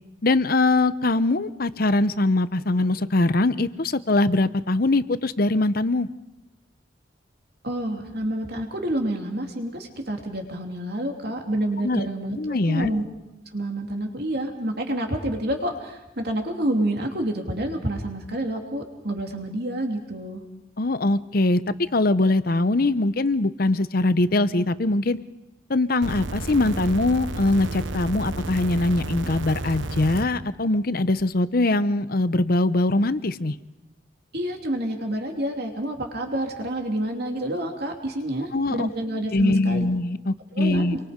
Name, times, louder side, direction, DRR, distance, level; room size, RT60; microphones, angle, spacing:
voice 1, 0.2-6.1 11.8-12.1 12.4-12.9 20.8-21.6 21.9-25.2 25.7-33.5 38.5-38.9 39.3-41.0, left 2 dB, 50° left, 14 dB, 0.8 m, -22 dB
voice 2, 7.6-13.0 13.5-20.4 34.3-39.9 40.5-41.0, right 1 dB, 55° right, 3 dB, 3.0 m, -28 dB
sound 1, 26.0-30.2 31.2-31.3, right 2 dB, 75° right, 1.1 m, -32 dB
27.5 x 23.0 x 5.2 m, 0.97 s
head